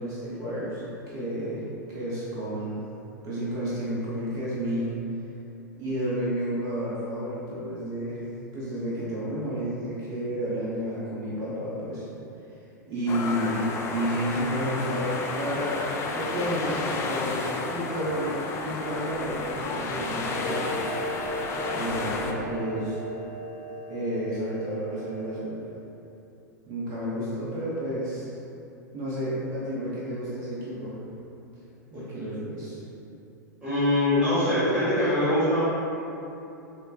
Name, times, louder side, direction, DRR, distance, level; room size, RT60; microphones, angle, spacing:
voice 1, 0.0-2.8 3.2-4.9 5.7-8.2 8.5-12.1 12.9-15.8 16.1-18.3 18.6-20.9 21.7-23.0 23.9-25.6 26.7-28.3 28.9-31.0 31.9-32.8, equal, 35° right, -8 dB, 0.8 m, -31 dB
sound 1, 13.1-22.3, left 3 dB, 25° left, 0.4 m, -32 dB
Clock, 20.4-25.4, equal, 55° left, 0.7 m, -36 dB
voice 2, 33.6-35.6, left 1 dB, 15° right, -15 dB, 1.4 m, -23 dB
6.2 x 2.1 x 2.5 m, 2.8 s
figure-of-eight pair, 90°, 10 cm